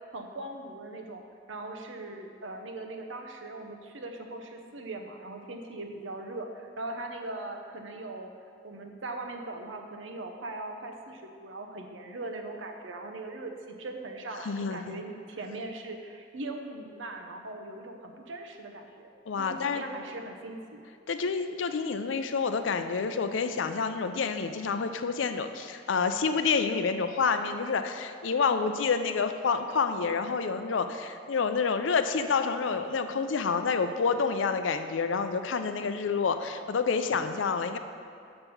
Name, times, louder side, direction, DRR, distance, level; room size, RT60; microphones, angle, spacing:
voice 1, 0.1-1.2 1.5-8.3 8.6-19.1 19.4-20.9, right 2 dB, 85° right, 4 dB, 0.8 m, -40 dB
voice 2, 14.4-14.9 19.3-19.8 21.1-37.8, left 5 dB, 85° left, 9 dB, 0.5 m, -28 dB
5.9 x 5.4 x 6.9 m, 2.4 s
head